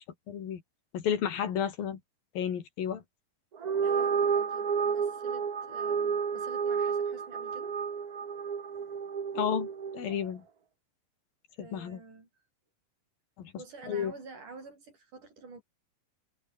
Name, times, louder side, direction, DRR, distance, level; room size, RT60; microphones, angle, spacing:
voice 1, 0.3-0.6 0.9-2.0 2.4-3.0 9.3-9.7 9.9-10.4 11.6-12.0 13.4-13.5 13.9-14.1, left 8 dB, 80° left, 4.4 m, -31 dB
sound 1, 3.5-10.1, right 6 dB, 45° right, 1.2 m, -31 dB
voice 2, 3.8-7.8 11.6-12.3 13.6-15.6, right 4 dB, 60° right, 8.3 m, -48 dB
omnidirectional pair, 4.0 m